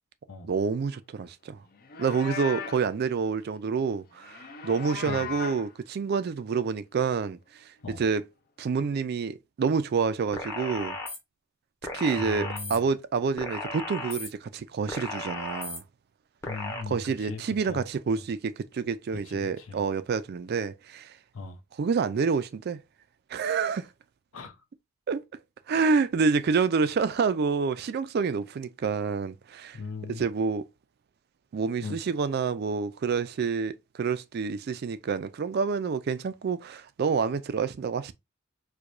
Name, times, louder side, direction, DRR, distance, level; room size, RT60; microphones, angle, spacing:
voice 1, 0.4-1.6 2.0-7.4 8.0-8.2 8.6-11.0 11.9-15.8 16.9-21.1 21.8-22.8 23.3-23.9 25.1-25.2 25.7-29.8 30.1-30.6 31.5-38.1, right 5 dB, 50° right, 0.3 m, -28 dB
Livestock farm animals working animals, 1.7-2.9 4.2-5.7, left 6 dB, 45° left, 0.5 m, -37 dB
sound 1, 10.3-11.2 11.8-12.8 13.4-14.3 14.9-15.8 16.4-16.8, left 2 dB, 15° left, 0.7 m, -35 dB
voice 2, 12.2-12.9 16.5-17.9 18.1-18.2 19.2-19.8 21.3-21.6 24.3-24.6 29.7-30.3 31.8-32.0, left 4 dB, 80° left, 0.7 m, -39 dB
4.6 x 2.2 x 2.5 m
head